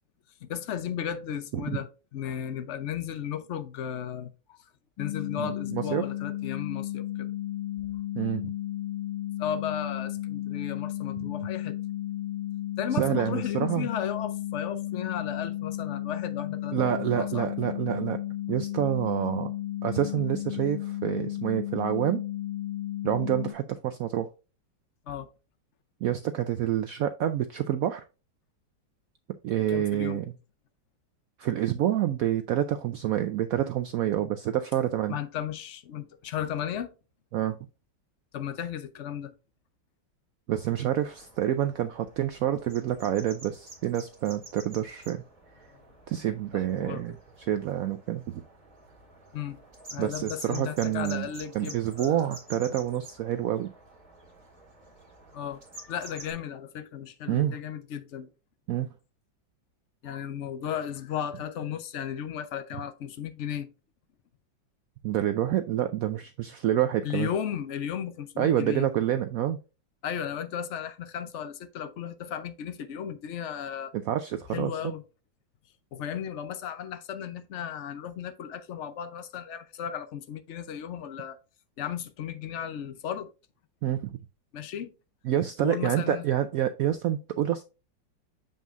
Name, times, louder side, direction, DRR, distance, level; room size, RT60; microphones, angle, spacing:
voice 1, 0.4-4.6 5.0-7.3 9.4-11.7 12.8-17.5 25.1-25.3 29.7-30.2 35.1-36.9 38.3-39.3 45.7-45.8 46.7-47.2 49.3-49.6 49.9-52.3 55.3-58.3 60.0-63.7 67.0-68.9 70.0-73.9 74.5-75.0 75.9-81.4 81.8-83.3 84.5-84.9 85.6-86.2, left 9 dB, 65° left, 0.7 m, -35 dB
sound 1, 5.0-23.5, left 13 dB, 85° left, 1.9 m, -34 dB
voice 2, 5.4-6.0 8.2-8.5 12.9-13.9 16.7-18.2 18.5-19.5 19.8-22.2 23.0-24.3 26.0-28.0 29.4-30.3 31.4-35.2 37.3-37.6 40.5-45.2 46.1-47.1 47.4-48.4 50.0-51.3 51.5-53.7 57.3-57.6 58.7-58.9 65.0-67.3 68.4-69.6 73.9-74.7 83.8-84.2 85.2-87.6, right 11 dB, 90° right, 0.7 m, -28 dB
sound 2, 40.5-56.3, right 2 dB, 25° right, 2.1 m, -49 dB
7.4 x 5.4 x 2.5 m
omnidirectional pair, 2.0 m